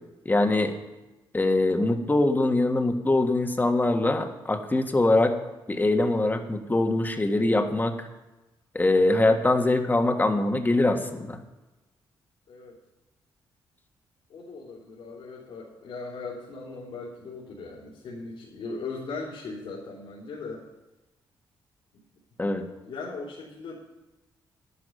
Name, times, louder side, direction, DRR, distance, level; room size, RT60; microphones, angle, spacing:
voice 1, 0.2-0.7 1.3-5.4 5.7-8.1 8.7-11.4 22.4-22.7, left 2 dB, 20° left, 5 dB, 1.5 m, -23 dB
voice 2, 14.3-20.6 22.8-23.7, left 3 dB, 75° left, -10 dB, 3.4 m, -38 dB
11.0 x 11.0 x 5.3 m, 1.0 s
cardioid pair, 70°, 9 cm